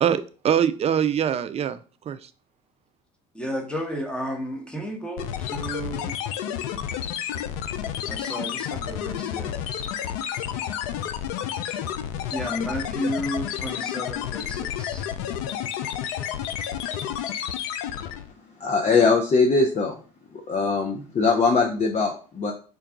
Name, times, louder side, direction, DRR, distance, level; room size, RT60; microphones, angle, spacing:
voice 1, 0.0-1.8 2.1-2.3, right 9 dB, 35° right, 0.4 m, -23 dB
voice 2, 3.3-6.2 8.0-9.6 12.3-15.1, equal, 5° left, 1.0 m, -32 dB
sound 1, 5.2-18.3, left 9 dB, 75° left, 0.4 m, -30 dB
voice 3, 18.6-20.0 20.5-22.5, left 4 dB, 35° left, 0.7 m, -21 dB
3.8 x 2.3 x 3.6 m
hypercardioid pair, 70°, 19 cm